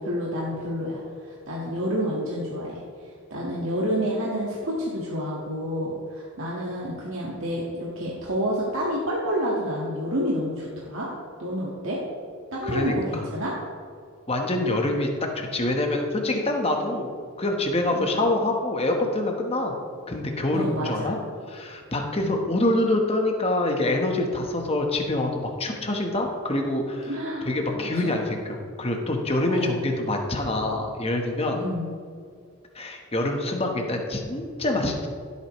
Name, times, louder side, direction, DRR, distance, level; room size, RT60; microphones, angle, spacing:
voice 1, 0.0-2.8 3.3-11.1 11.4-12.0 12.5-13.5 17.9-18.1 20.5-21.1 22.2-22.4 27.1-27.5 27.7-28.1 29.5-29.7 31.5-31.9, equal, 65° right, -5 dB, 1.7 m, -29 dB
voice 2, 12.6-13.2 14.3-17.1 17.4-19.7 20.1-21.2 21.5-27.1 27.4-31.6 32.7-35.1, left 1 dB, 25° left, 2 dB, 1.2 m, -25 dB
15.5 x 8.5 x 3.2 m, 2.3 s
head